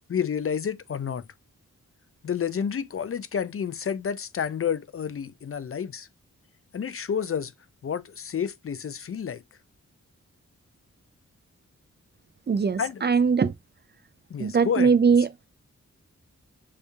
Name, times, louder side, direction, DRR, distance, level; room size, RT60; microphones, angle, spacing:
voice 1, 0.1-1.2 2.2-6.1 6.7-7.5 7.8-9.4 12.8-13.0 14.3-14.9, left 7 dB, 50° left, 0.5 m, -30 dB
voice 2, 12.5-13.5 14.4-15.3, right 5 dB, 35° right, 0.4 m, -21 dB
6.6 x 2.7 x 2.3 m
cardioid pair, 60°, 30 cm